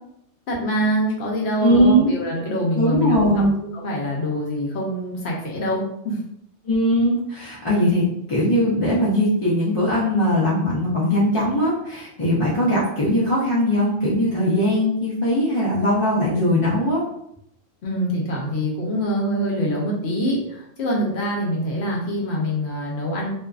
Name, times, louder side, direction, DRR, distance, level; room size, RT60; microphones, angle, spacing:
voice 1, 0.5-6.2 17.8-23.3, equal, 60° left, -2 dB, 0.9 m, -25 dB
voice 2, 1.6-2.1 2.8-3.5 6.6-17.0, equal, 40° left, -8 dB, 0.4 m, -20 dB
2.6 x 2.4 x 2.3 m, 0.74 s
omnidirectional pair, 1.3 m